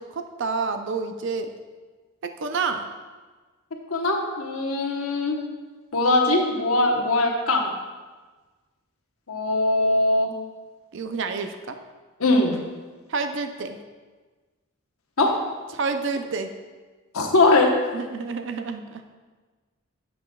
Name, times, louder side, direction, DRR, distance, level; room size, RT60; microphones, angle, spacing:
voice 1, 0.0-1.5 2.2-2.9 10.9-11.8 13.1-13.8 15.7-16.5 17.9-19.0, right 4 dB, 60° right, 7 dB, 0.5 m, -29 dB
voice 2, 3.9-5.4 5.9-7.7 9.3-10.3 12.2-12.6 15.2-15.3 17.1-17.7, left 2 dB, 80° left, 2 dB, 1.1 m, -21 dB
9.8 x 7.7 x 2.3 m, 1.3 s
head